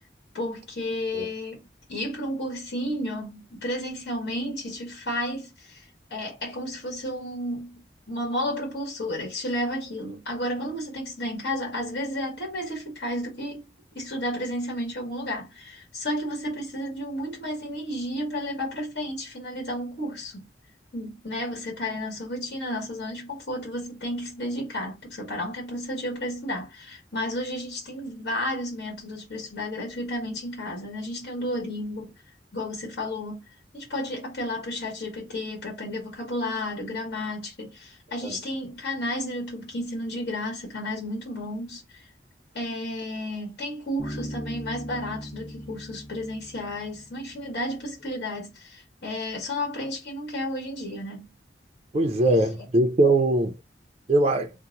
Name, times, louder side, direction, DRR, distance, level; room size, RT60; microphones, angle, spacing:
voice 1, 0.3-1.6 1.9-13.7 13.9-20.5 20.9-32.1 32.5-33.4 33.7-42.1 42.5-51.3, left 1 dB, 65° left, 1.3 m, -32 dB
Bass guitar, 44.0-47.7, equal, 20° left, 0.8 m, -39 dB
voice 2, 51.9-53.5 54.1-54.5, right 2 dB, 35° right, 0.4 m, -21 dB
2.8 x 2.0 x 3.7 m
head